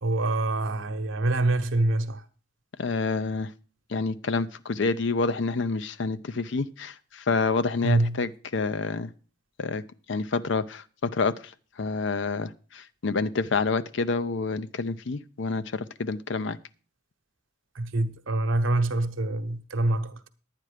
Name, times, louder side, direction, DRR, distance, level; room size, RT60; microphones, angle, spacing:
voice 1, 0.0-2.2 7.8-8.2 17.7-20.3, right 2 dB, 80° right, 1.0 m, -25 dB
voice 2, 2.8-3.5 3.9-9.1 9.6-9.8 10.1-11.3 11.8-16.6, left 4 dB, 65° left, 0.6 m, -28 dB
10.5 x 9.2 x 4.9 m
head